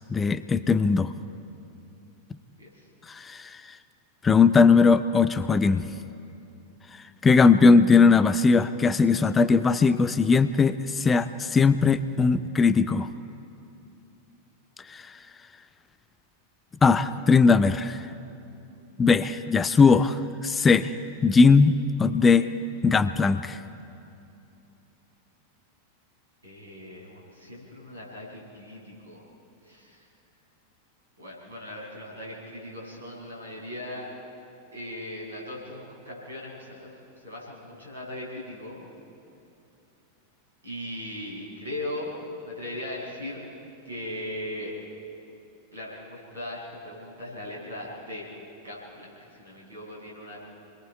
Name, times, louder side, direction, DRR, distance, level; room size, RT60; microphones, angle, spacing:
voice 1, 0.1-1.1 3.1-3.5 4.2-5.9 7.2-13.1 14.9-15.0 16.8-18.0 19.0-20.9 21.2-22.5 22.8-23.6, left 4 dB, 15° left, 13 dB, 0.6 m, -19 dB
voice 2, 26.4-29.2 29.6-30.1 31.2-34.1 34.7-36.9 37.2-38.9 40.6-43.5 43.8-44.7 45.7-50.4, left 1 dB, 75° right, -4 dB, 6.9 m, -38 dB
28.0 x 21.5 x 4.6 m, 2.7 s
figure-of-eight pair, 90°, 0 cm